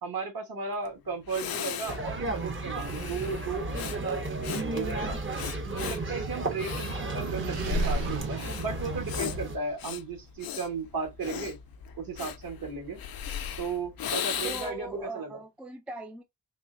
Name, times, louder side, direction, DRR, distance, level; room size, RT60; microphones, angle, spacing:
voice 1, 0.0-5.2 5.6-11.6 12.0-13.0 13.6-15.4, right 4 dB, 55° right, 1.3 m, -35 dB
Breathing, 0.8-0.9 1.3-14.9, left 5 dB, 55° left, 0.5 m, -36 dB
sound 1, 1.9-9.6, right 2 dB, 30° right, 0.8 m, -34 dB
sound 2, 5.5-9.7, right 6 dB, 90° right, 0.8 m, -41 dB
voice 2, 14.4-16.2, right 2 dB, 5° right, 0.4 m, -40 dB
3.6 x 2.9 x 2.6 m
wide cardioid pair, 125°, 43 cm